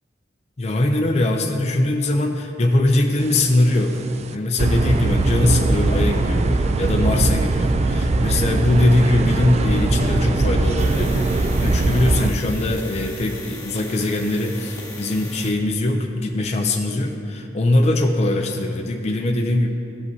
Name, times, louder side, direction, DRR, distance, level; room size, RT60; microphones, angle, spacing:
voice 1, 0.6-4.0 4.3-19.7, left 1 dB, 35° left, 2 dB, 0.5 m, -21 dB
sound 1, 3.4-3.7 4.1-4.2 4.6-12.3, right 2 dB, 35° right, 0.4 m, -20 dB
sound 2, 10.8-15.6, left 2 dB, 20° left, 1.4 m, -38 dB
15.0 x 5.2 x 2.7 m, 2.5 s
head